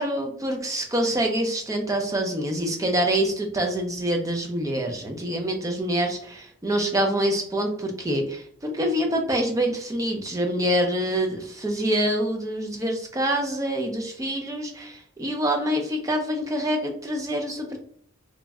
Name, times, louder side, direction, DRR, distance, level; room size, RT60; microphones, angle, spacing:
voice 1, 0.0-17.8, right 1 dB, 15° right, 2 dB, 0.4 m, -26 dB
3.0 x 2.5 x 2.2 m, 0.62 s
head